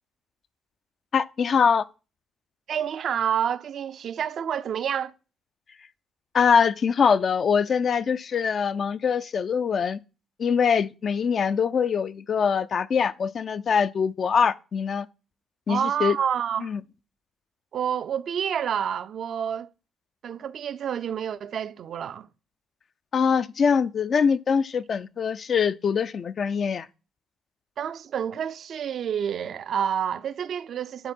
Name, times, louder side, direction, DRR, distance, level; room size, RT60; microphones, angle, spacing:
voice 1, 1.1-1.8 6.3-10.0 10.4-15.1 15.7-16.2 16.6-16.8 23.1-26.9, left 6 dB, 50° left, 0.4 m, -23 dB
voice 2, 2.7-5.1 15.7-16.7 17.7-19.7 20.2-22.3 27.8-31.1, right 8 dB, 60° right, 0.4 m, -28 dB
9.9 x 3.6 x 4.3 m
hypercardioid pair, 55°, 0 cm